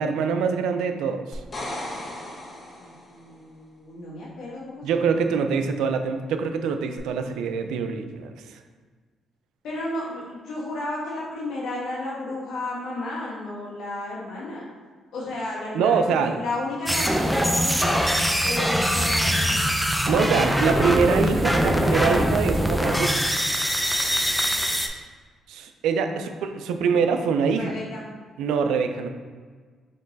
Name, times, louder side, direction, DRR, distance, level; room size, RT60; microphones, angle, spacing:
voice 1, 0.0-1.4 4.8-8.6 15.7-16.4 20.1-23.2 25.5-27.7 28.4-29.1, right 6 dB, 90° right, 7 dB, 0.4 m, -24 dB
sound 1, 1.3-3.2 7.0-7.1, left 1 dB, 35° left, 1.2 m, -36 dB
voice 2, 2.8-4.8 5.3-5.4 9.6-14.6 15.1-17.9 18.4-19.6 26.1-26.2 27.5-28.0, left 2 dB, 75° left, -5 dB, 1.5 m, -33 dB
sound 2, 16.9-24.9, equal, 5° right, 0.4 m, -22 dB
4.4 x 3.1 x 4.0 m, 1.5 s
cardioid pair, 90°, 0 cm